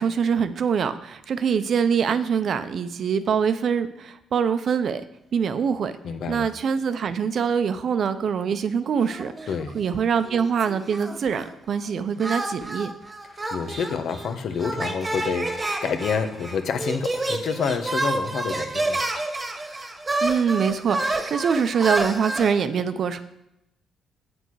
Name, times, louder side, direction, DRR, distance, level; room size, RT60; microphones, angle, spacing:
voice 1, 0.0-5.0 5.3-5.9 6.3-9.3 9.7-12.9 20.2-23.2, right 7 dB, 60° right, 11 dB, 0.7 m, -24 dB
voice 2, 6.0-6.5 9.5-9.8 13.3-19.0, left 6 dB, 65° left, 7 dB, 1.1 m, -28 dB
sound 1, 9.1-9.9 10.2-11.5 12.2-22.5, right 2 dB, 25° right, 1.4 m, -29 dB
7.9 x 7.8 x 4.8 m, 0.86 s
cardioid pair, 90°, 0 cm